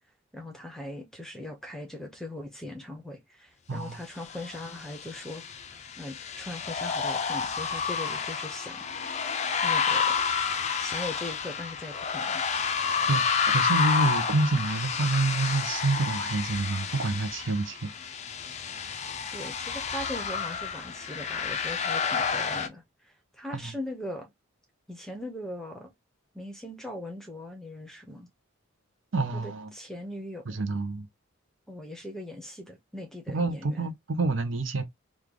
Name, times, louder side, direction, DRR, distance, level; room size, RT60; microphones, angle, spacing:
voice 1, 0.3-5.4 5.7-8.8 9.6-10.2 10.7-12.4 19.3-24.3 24.9-25.9 26.3-28.3 29.3-30.6 31.7-33.9, left 1 dB, ahead, 0.8 m, -40 dB
sound 1, 4.3-22.7, left 6 dB, 35° left, 0.4 m, -30 dB
voice 2, 13.1-17.9 23.5-23.7 29.1-29.7 30.5-31.1 33.3-34.8, right 3 dB, 65° right, 0.7 m, -28 dB
3.1 x 2.3 x 3.7 m
head